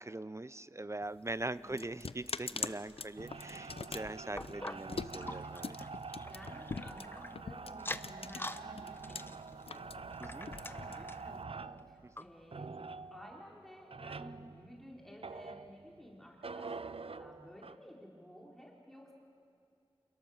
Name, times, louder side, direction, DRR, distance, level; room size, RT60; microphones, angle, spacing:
voice 1, 0.0-5.8 10.2-10.5 12.0-12.3, right 2 dB, 30° right, 16 dB, 0.6 m, -42 dB
sound 1, 1.0-9.2 9.5-11.4, left 4 dB, 75° left, 0.6 m, -43 dB
voice 2, 1.4-1.9 6.3-19.1, equal, 5° left, -2 dB, 4.1 m, -54 dB
sound 2, 3.2-16.0 16.4-17.8, right 4 dB, 75° right, 0.6 m, -46 dB
sound 3, 4.4-7.3 7.7-8.6 8.9-11.3 11.8-11.9 12.2-12.3 12.9-13.0, left 1 dB, 25° left, 0.8 m, -45 dB
29.0 x 27.5 x 7.3 m, 2.4 s
wide cardioid pair, 55°, 10 cm